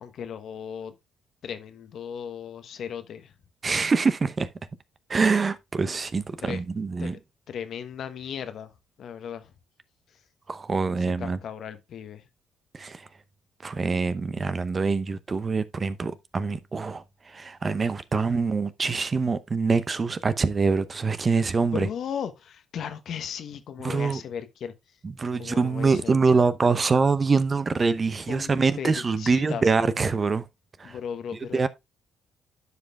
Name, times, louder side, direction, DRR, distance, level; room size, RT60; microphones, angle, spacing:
voice 1, 0.0-0.9 1.4-3.3 6.4-6.6 7.0-7.2 7.5-8.7 9.0-9.5 11.2-12.2 18.1-18.3 21.6-24.7 25.4-26.2 28.3-28.5 28.8-29.8 30.8-31.7, left 8 dB, 60° left, 1.0 m, -36 dB
voice 2, 3.6-4.5 5.1-7.2 10.5-11.4 12.7-13.1 13.6-21.9 23.8-24.2 25.0-30.4 30.8-31.0 31.5-31.7, right 4 dB, 35° right, 0.8 m, -24 dB
12.5 x 5.1 x 2.4 m
hypercardioid pair, 50°, 0 cm